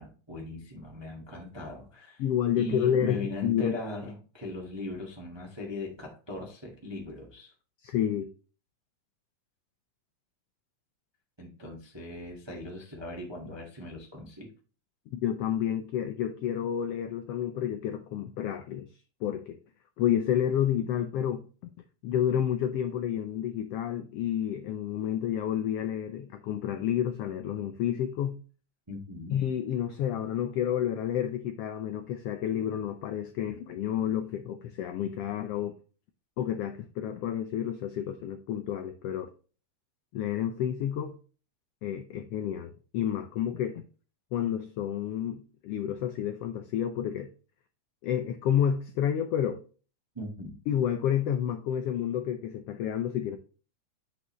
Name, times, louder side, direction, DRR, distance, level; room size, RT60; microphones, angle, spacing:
voice 1, 0.0-2.2 2.6-7.5 11.4-14.5 28.9-29.4 50.1-50.6, left 1 dB, 25° right, 0.6 m, -39 dB
voice 2, 2.2-3.8 7.8-8.3 15.1-18.9 19.2-19.6 20.0-21.4 22.0-28.4 29.3-35.7 36.4-39.3 40.1-41.2 41.8-43.9 44.3-47.3 48.0-49.6 50.7-53.4, left 10 dB, 85° left, 1.3 m, -30 dB
8.5 x 5.5 x 3.0 m
omnidirectional pair, 3.5 m